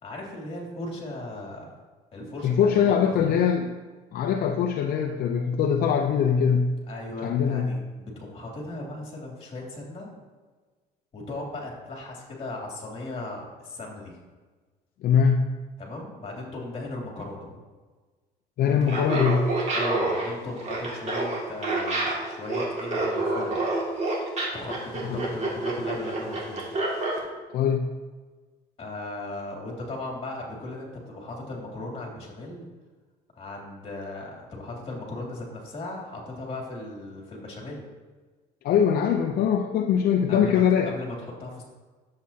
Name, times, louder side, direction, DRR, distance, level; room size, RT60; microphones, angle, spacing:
voice 1, 0.0-1.8 2.1-3.2 6.9-10.1 11.1-14.1 15.8-17.6 18.9-19.3 19.7-23.6 24.5-26.7 28.8-32.7 33.3-37.9 40.3-41.6, left 2 dB, 35° left, -1 dB, 2.8 m, -37 dB
voice 2, 2.4-3.7 4.1-6.8 7.2-7.8 15.0-15.6 18.6-19.5 24.0-24.1 25.1-25.2 27.5-27.9 38.6-40.9, left 7 dB, 65° left, 4 dB, 0.6 m, -22 dB
Laughter, 18.8-27.2, right 2 dB, 40° right, 2.2 m, -28 dB
10.5 x 7.6 x 2.8 m, 1.4 s
cardioid pair, 110°, 17 cm